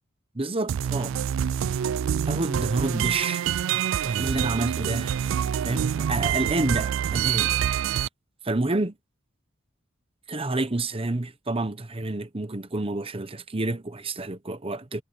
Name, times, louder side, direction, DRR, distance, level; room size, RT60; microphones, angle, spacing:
voice 1, 0.3-1.2 2.3-3.4 3.7-5.3 5.6-7.9 8.4-8.9 10.3-15.0, right 2 dB, 25° right, 1.0 m, -29 dB
sound 1, 0.7-8.1, right 9 dB, 65° right, 0.3 m, -26 dB
head